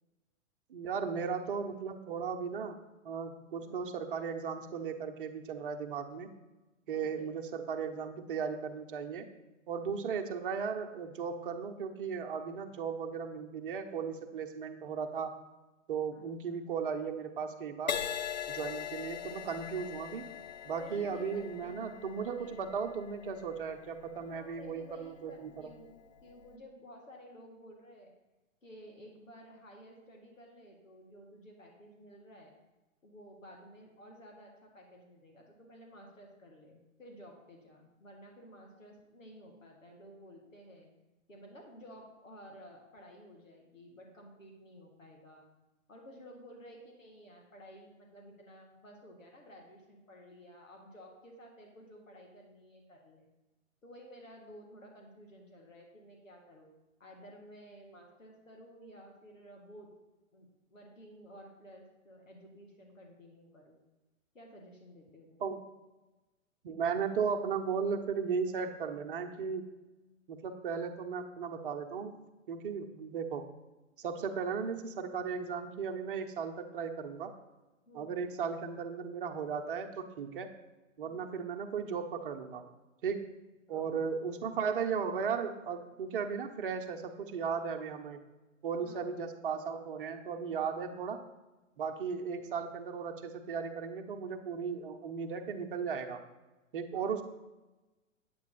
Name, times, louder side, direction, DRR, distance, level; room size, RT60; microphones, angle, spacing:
voice 1, 0.7-2.8 3.0-6.3 6.9-9.3 9.7-15.3 15.9-18.0 18.5-20.3 20.6-25.7 65.4-65.6 66.6-69.6 70.3-72.1 72.5-73.4 74.0-77.3 77.9-80.5 81.0-82.6 83.0-83.4 83.7-88.2 88.6-91.2 91.8-96.2 96.7-97.2, right 6 dB, 40° right, 5 dB, 1.0 m, -36 dB
voice 2, 3.6-3.9 6.9-7.3 16.1-16.6 20.7-22.1 22.4-22.6 24.2-28.1 28.6-32.5 33.0-40.9 41.3-45.4 45.9-53.3 53.8-56.7 57.0-59.9 60.3-63.8 64.3-65.4 77.9-78.3 81.0-81.4 83.7-84.1 88.8-89.2 96.9-97.2, equal, 70° left, 1 dB, 2.2 m, -54 dB
Crash cymbal, 17.9-25.5 26.2-26.5, left 8 dB, 35° left, 0.4 m, -41 dB
8.9 x 8.4 x 4.0 m, 1.1 s
figure-of-eight pair, 120°, 40 cm